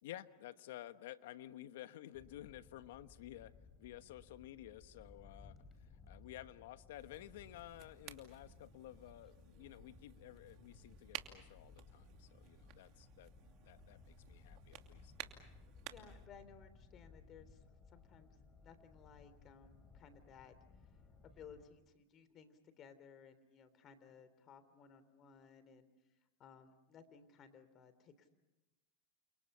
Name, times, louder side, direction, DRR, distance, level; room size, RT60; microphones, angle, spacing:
voice 1, 0.0-3.5 3.8-5.6 6.1-13.3 13.6-15.1, left 13 dB, 80° left, 12 dB, 1.1 m, -53 dB
sound 1, 2.1-21.6, left 4 dB, 20° left, 4.6 m, -61 dB
sound 2, 6.9-16.3, right 14 dB, 50° right, 2.7 m, -55 dB
voice 2, 15.9-28.3, left 6 dB, 35° left, 12 dB, 3.4 m, -60 dB
30.0 x 28.0 x 5.7 m, 1.0 s
supercardioid pair, 125°, 0 cm